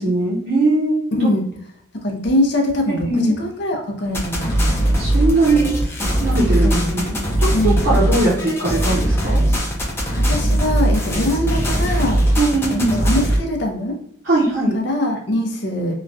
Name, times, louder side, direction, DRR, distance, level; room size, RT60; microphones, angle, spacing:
voice 1, 0.0-1.3 2.9-3.4 5.0-5.7 6.1-7.1 7.4-9.4 12.4-13.0 14.2-14.8, right 2 dB, 70° right, -8 dB, 0.8 m, -20 dB
voice 2, 1.2-1.5 2.0-4.8 6.6-6.9 7.5-7.9 10.2-12.2 12.7-14.0 14.7-15.9, left 1 dB, 60° left, 2 dB, 0.6 m, -22 dB
sound 1, 4.1-13.4, right 1 dB, 10° left, 0.5 m, -19 dB
3.0 x 2.2 x 2.6 m, 0.70 s
head